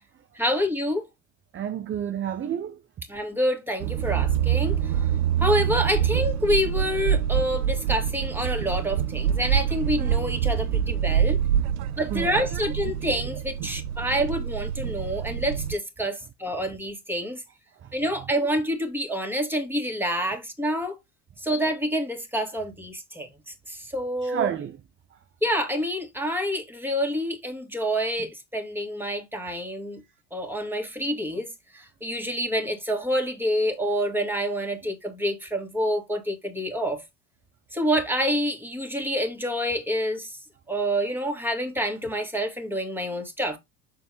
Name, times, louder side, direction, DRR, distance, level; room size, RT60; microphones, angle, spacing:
voice 1, 0.3-1.0 3.1-5.1 5.4-11.4 12.0-17.4 17.9-21.0 21.4-24.5 25.4-30.0 30.3-31.5 31.7-37.0 37.7-40.4 40.7-43.6, equal, 5° right, 2.5 m, -27 dB
voice 2, 1.5-2.8 11.9-12.6 13.1-13.2 13.7-13.8 17.8-17.9 24.2-24.8, right 9 dB, 25° right, 0.7 m, -31 dB
sound 1, 3.8-15.8, right 9 dB, 70° right, 0.7 m, -26 dB
7.0 x 4.6 x 3.1 m
hypercardioid pair, 75°, 48 cm